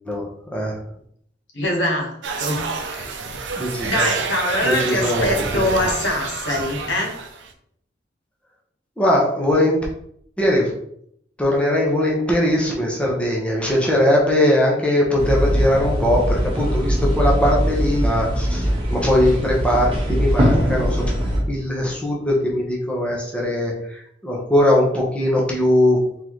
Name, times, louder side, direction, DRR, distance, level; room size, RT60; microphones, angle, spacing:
voice 1, 0.0-0.8 3.6-4.1 4.6-5.6 9.0-9.8 10.4-10.7 11.4-26.0, left 1 dB, 5° left, -3 dB, 1.0 m, -20 dB
voice 2, 1.5-3.2 3.6-7.2, left 1 dB, 90° left, 0 dB, 1.2 m, -24 dB
sound 1, 2.2-7.5, right 4 dB, 80° right, 0.6 m, -28 dB
sound 2, 15.2-21.4, equal, 30° right, 1.1 m, -21 dB
3.9 x 3.8 x 3.1 m, 0.69 s
head